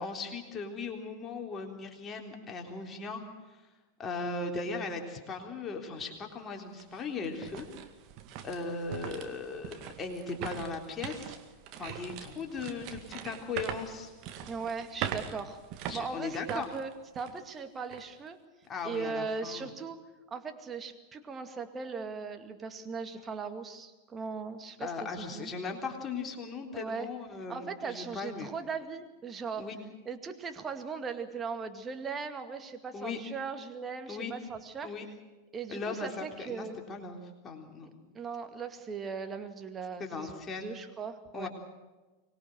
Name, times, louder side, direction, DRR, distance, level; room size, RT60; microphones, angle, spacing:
voice 1, 0.0-3.2 4.0-7.7 8.4-11.4 11.8-14.1 15.9-16.7 18.7-19.7 24.8-28.5 29.6-29.8 32.9-33.2 34.1-34.3 34.8-35.1 35.7-38.0 40.0-40.7 41.3-41.5, left 4 dB, 20° left, 2 dB, 3.6 m, -38 dB
sound 1, 6.0-6.1 6.6-17.5 17.9-18.0 18.6-19.0, right 9 dB, 40° right, 2.1 m, -42 dB
voice 2, 14.5-15.6 15.9-18.4 18.8-20.0 20.3-25.5 26.7-27.1 27.5-29.6 30.1-34.9 35.5-36.8 38.1-41.5, right 5 dB, 20° right, 7 dB, 2.2 m, -38 dB
24.5 x 20.5 x 6.5 m, 1.2 s
figure-of-eight pair, 90°, 0 cm